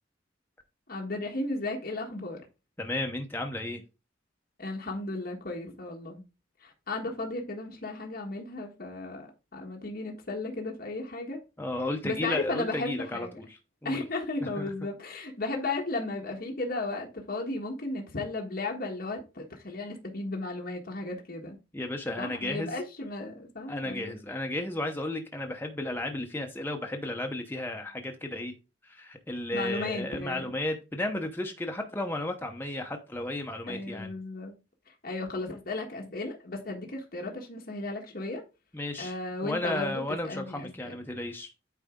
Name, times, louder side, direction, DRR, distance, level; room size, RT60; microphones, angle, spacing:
voice 1, 0.9-2.4 4.6-6.2 6.6-9.3 9.5-11.4 12.0-13.4 13.8-21.6 22.2-24.2 29.5-30.5 33.7-34.5 34.9-38.4 39.0-40.9, left 2 dB, 50° left, 1.4 m, -35 dB
voice 2, 2.8-3.8 11.6-13.4 13.8-14.0 14.6-14.7 21.7-22.7 23.7-28.5 28.8-34.1 38.7-39.1 39.4-41.5, left 1 dB, 10° left, 0.8 m, -33 dB
9.1 x 4.0 x 3.7 m
head